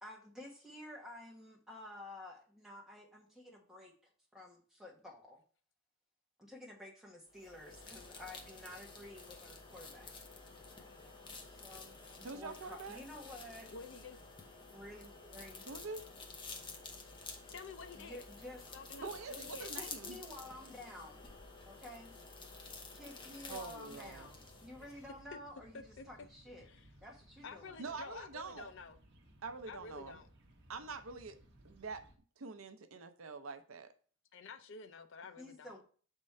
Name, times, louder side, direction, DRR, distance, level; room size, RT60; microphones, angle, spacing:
voice 1, 0.0-5.4 6.4-10.1 11.4-13.7 14.7-15.7 17.9-18.6 19.0-19.1 19.8-22.2 22.9-26.7 27.0-27.8 35.4-35.8, left 1 dB, ahead, 1.4 m, -51 dB
sound 1, 7.3-25.1, left 3 dB, 25° left, 0.8 m, -51 dB
voice 2, 12.2-13.0 15.7-16.1 19.0-20.2 23.5-24.3 27.8-28.7 29.4-30.2 30.7-31.4 31.6-32.0 32.4-33.9, right 4 dB, 80° right, 0.6 m, -45 dB
voice 3, 13.6-14.2 17.5-18.2 18.7-19.7 25.3-25.4 25.7-26.0 26.6-26.9 27.4-29.0 29.7-30.3 34.3-35.8, left 4 dB, 65° left, 0.5 m, -50 dB
sound 2, 23.8-32.2, right 1 dB, 60° right, 1.0 m, -62 dB
6.5 x 3.7 x 4.2 m
head